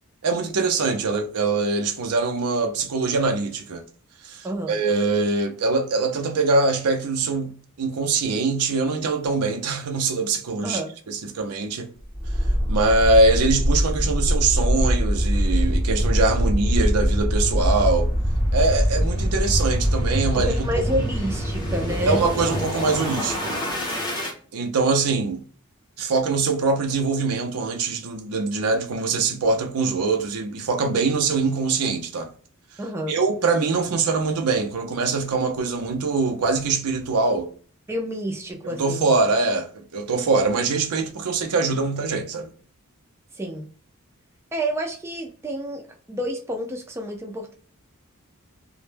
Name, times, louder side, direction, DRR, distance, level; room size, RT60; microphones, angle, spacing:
voice 1, 0.2-3.8 4.2-10.8 11.1-11.9 12.7-18.1 18.5-21.0 22.1-23.6 24.5-25.4 26.0-32.3 33.1-37.5 38.6-42.5, right 3 dB, 85° right, 0.5 m, -23 dB
voice 2, 4.4-4.8 10.6-10.9 20.3-22.2 32.8-33.2 37.9-39.2 43.3-43.7 44.5-47.5, right 1 dB, 10° right, 0.3 m, -29 dB
sound 1, 12.1-24.3, equal, 20° left, 0.7 m, -23 dB
2.1 x 2.0 x 3.1 m
head